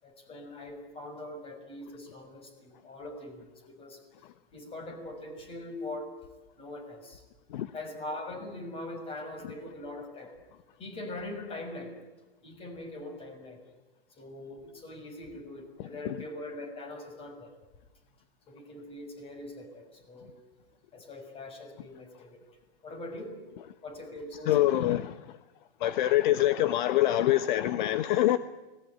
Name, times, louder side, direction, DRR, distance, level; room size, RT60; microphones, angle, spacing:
voice 1, 0.0-3.4 3.7-4.0 4.5-6.1 6.6-7.2 7.7-10.3 10.8-12.0 12.4-13.6 14.2-17.5 18.5-20.3 20.9-22.4 22.8-23.3 23.8-24.7, left 1 dB, 20° left, 6.4 m, -42 dB
voice 2, 24.5-25.1 25.8-28.4, left 14 dB, 50° left, 1.2 m, -25 dB
29.5 x 20.5 x 9.5 m
hypercardioid pair, 145°, 30 cm